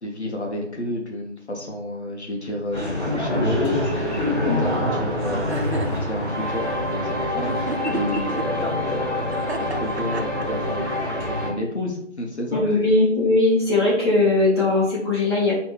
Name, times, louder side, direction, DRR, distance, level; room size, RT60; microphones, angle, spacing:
voice 1, 0.0-12.6, left 1 dB, 65° left, 0 dB, 1.0 m, -31 dB
sound 1, 2.7-11.5, left 1 dB, 40° left, 1.7 m, -25 dB
sound 2, 5.2-6.0 7.5-8.4 9.3-10.7, right 3 dB, 60° right, 0.6 m, -31 dB
voice 2, 12.5-15.5, left 2 dB, 20° left, -8 dB, 1.3 m, -19 dB
3.3 x 3.1 x 4.5 m, 0.68 s
figure-of-eight pair, 160°, 36 cm